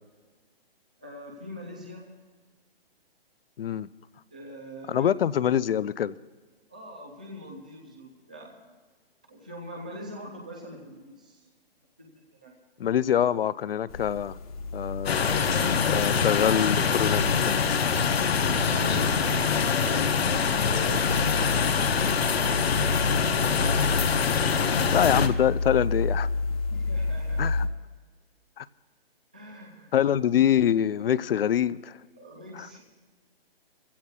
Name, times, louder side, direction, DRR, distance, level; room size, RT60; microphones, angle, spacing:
voice 1, 1.0-2.1 4.3-5.1 6.7-8.7 9.3-11.4 12.0-12.1 12.4-12.5 18.7-20.3 20.6-21.5 22.7-23.8 26.7-27.6 29.3-29.9 32.2-32.9, equal, 10° right, 0 dB, 0.3 m, -42 dB
voice 2, 3.6-3.9 4.9-6.2 12.8-14.4 14.7-15.3 15.8-17.7 24.9-26.3 27.4-27.7 28.6-28.7 29.9-32.0 32.5-32.7, left 10 dB, 70° left, 17 dB, 0.5 m, -25 dB
sound 1, 13.9-27.7, left 3 dB, 35° left, 1.1 m, -32 dB
sound 2, 15.1-25.3, left 6 dB, 85° left, 1.1 m, -24 dB
23.5 x 16.0 x 2.3 m, 1.4 s
hypercardioid pair, 160°, 30 cm